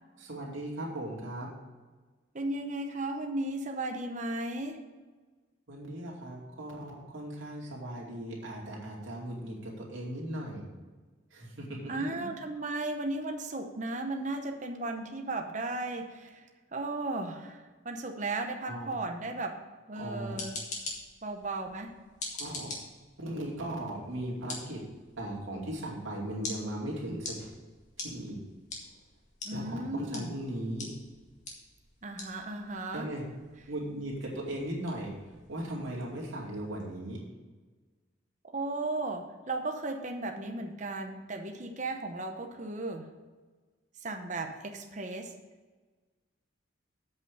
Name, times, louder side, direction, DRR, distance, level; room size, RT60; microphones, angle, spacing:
voice 1, 0.2-1.5 5.7-10.7 11.3-12.1 18.7-18.9 20.0-20.4 22.4-22.7 23.2-24.8 25.2-27.5 28.0-28.4 29.5-30.9 32.9-33.3 33.7-35.1 35.5-37.2, right 1 dB, 80° right, -3 dB, 2.7 m, -38 dB
voice 2, 2.3-4.8 11.9-16.4 16.7-19.6 19.9-20.6 21.2-22.0 29.4-30.4 32.0-33.1 38.4-43.0 44.0-45.3, right 2 dB, 35° right, 4 dB, 0.8 m, -35 dB
sound 1, 20.1-36.9, left 2 dB, 35° left, 1.8 m, -46 dB
8.1 x 5.5 x 6.7 m, 1.3 s
head